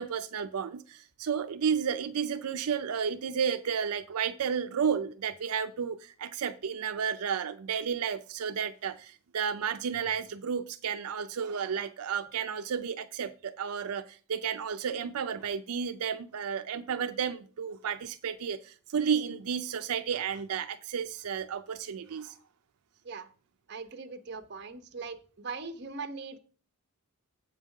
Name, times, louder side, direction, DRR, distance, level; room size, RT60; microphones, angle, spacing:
voice 1, 0.0-22.4, right 7 dB, 85° right, 0.5 m, -32 dB
voice 2, 23.7-26.4, right 4 dB, 50° right, 1.0 m, -40 dB
7.9 x 5.3 x 6.4 m
head